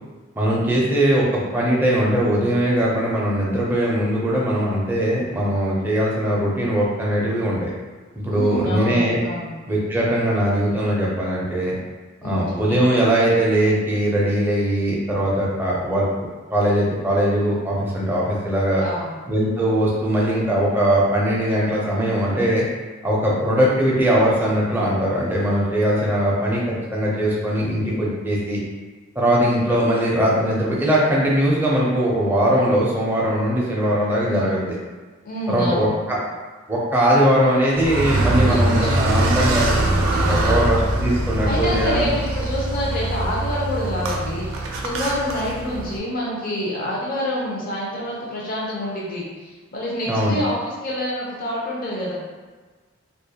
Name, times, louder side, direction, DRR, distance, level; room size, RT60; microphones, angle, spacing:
voice 1, 0.4-7.7 8.1-9.2 9.7-11.7 12.2-18.8 19.3-22.7 23.0-28.6 29.2-34.8 35.5-36.2 36.7-39.7 40.3-42.1 50.1-50.3, right 1 dB, 10° right, -6 dB, 0.4 m, -20 dB
voice 2, 8.3-9.5 12.2-12.9 18.8-19.2 34.3-34.6 35.2-36.0 38.4-39.0 39.7-40.7 41.4-52.1, left 1 dB, 45° left, -5 dB, 0.5 m, -27 dB
Car, 37.7-46.0, right 1 dB, 80° right, 0.4 m, -22 dB
2.2 x 2.0 x 2.7 m, 1.4 s
head